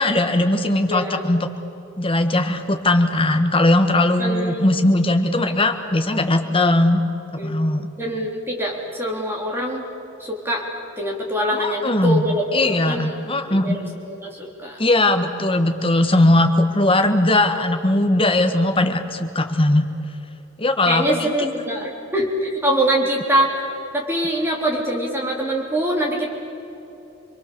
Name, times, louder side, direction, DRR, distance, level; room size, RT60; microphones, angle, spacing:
voice 1, 0.0-1.5 2.0-7.0 7.4-7.9 11.5-12.2 12.5-13.8 14.8-19.8 20.6-21.3, left 1 dB, 25° left, 6 dB, 1.6 m, -19 dB
voice 2, 0.9-1.2 4.2-4.7 7.4-7.6 8.0-9.8 10.2-10.7 11.0-13.1 13.5-13.7 14.1-14.8 20.9-23.5 23.9-26.3, right 1 dB, 10° right, -2 dB, 3.6 m, -24 dB
27.0 x 22.5 x 7.0 m, 3.0 s
head